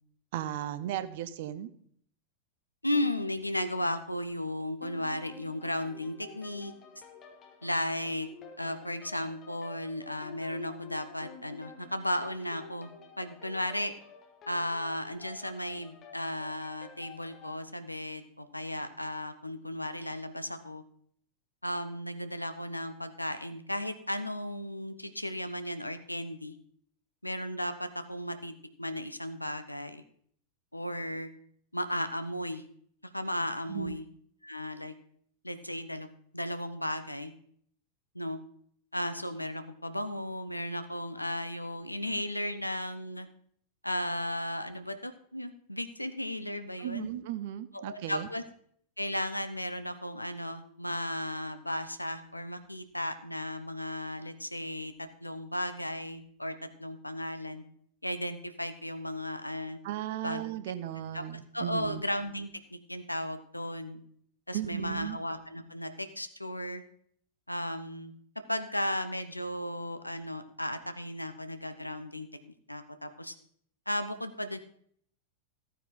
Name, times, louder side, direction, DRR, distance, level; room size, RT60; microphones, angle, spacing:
voice 1, 0.3-1.7 33.7-34.0 46.8-48.3 59.8-62.0 64.5-65.2, right 12 dB, 50° right, 13 dB, 0.8 m, -36 dB
voice 2, 2.8-6.7 7.6-8.3 8.6-12.9 13.2-13.9 14.5-20.8 21.6-26.5 27.2-28.5 28.8-30.0 30.7-31.3 31.7-32.6 33.1-34.0 34.4-34.9 35.4-37.3 38.1-38.4 38.9-43.3 43.8-47.1 47.7-48.4 49.0-57.6 58.0-59.8 60.2-60.4 61.1-61.2 61.5-64.0 64.5-66.8 67.5-68.1 68.5-73.3 73.9-74.6, left 1 dB, 85° left, 10 dB, 0.9 m, -35 dB
sound 1, 4.8-17.6, left 6 dB, 30° left, 2.2 m, -50 dB
14.5 x 9.3 x 3.9 m, 0.64 s
figure-of-eight pair, 90°, 0 cm